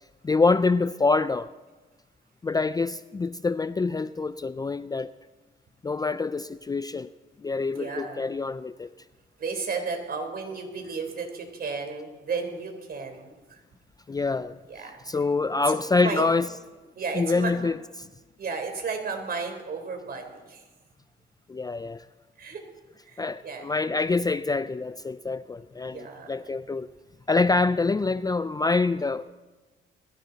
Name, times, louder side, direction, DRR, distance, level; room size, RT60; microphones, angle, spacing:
voice 1, 0.2-1.5 2.4-5.1 5.8-7.1 7.4-8.9 14.1-14.6 15.1-16.5 17.2-18.1 21.5-22.0 23.2-26.9 27.3-29.3, left 3 dB, 20° left, 0.4 m, -26 dB
voice 2, 7.7-8.3 9.4-13.6 14.7-15.2 15.7-16.3 16.9-17.5 18.4-20.6 22.4-22.6 23.0-23.6 25.9-26.4, right 5 dB, 50° right, 3.9 m, -34 dB
21.5 x 16.0 x 4.1 m
cardioid pair, 90°, 20 cm